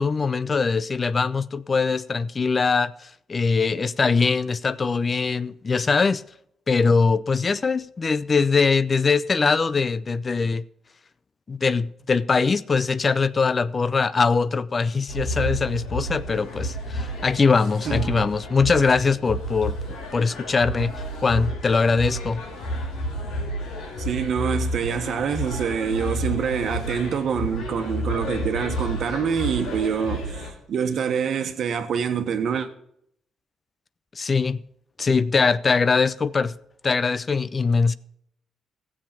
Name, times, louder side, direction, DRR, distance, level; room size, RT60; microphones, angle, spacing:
voice 1, 0.0-6.2 6.7-10.6 11.5-19.8 20.1-20.9 21.2-22.4 34.2-34.6 35.0-36.5 36.8-38.0, left 4 dB, 35° left, 0.4 m, -22 dB
sound 1, 15.1-30.5, equal, 90° left, 2.8 m, -31 dB
voice 2, 17.8-18.2 24.0-32.7, right 7 dB, 65° right, 1.3 m, -26 dB
15.0 x 7.4 x 5.8 m
cardioid pair, 90°, 0 cm